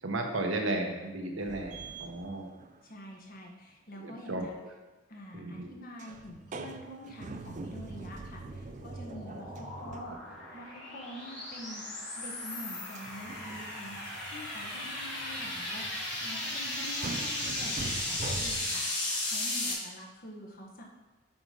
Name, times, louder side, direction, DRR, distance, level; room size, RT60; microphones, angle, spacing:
voice 1, 0.0-2.5 4.0-4.4 5.3-5.7, right 2 dB, 85° right, 2 dB, 1.2 m, -34 dB
sound 1, 1.4-2.9 6.0-10.6 12.9-18.9, right 3 dB, 40° right, 0.4 m, -44 dB
voice 2, 2.8-4.6 5.1-20.8, equal, 50° left, -1 dB, 1.4 m, -46 dB
sound 2, 8.2-19.7, left 1 dB, 65° left, 2.6 m, -36 dB
6.9 x 5.4 x 5.1 m, 1.1 s
head